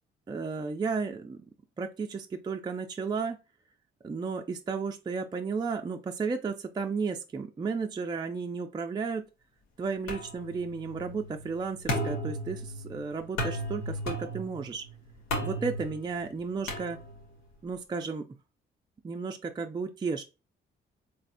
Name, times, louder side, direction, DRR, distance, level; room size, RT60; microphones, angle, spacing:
voice 1, 0.3-1.4 1.8-3.4 4.0-9.2 9.8-14.8 15.4-17.0 17.6-18.2 19.0-20.2, right 5 dB, 20° right, 4 dB, 0.4 m, -33 dB
sound 1, 10.1-17.4, equal, 90° left, 1.3 m, -36 dB
4.1 x 3.2 x 2.6 m, 0.29 s
cardioid pair, 90°, 20 cm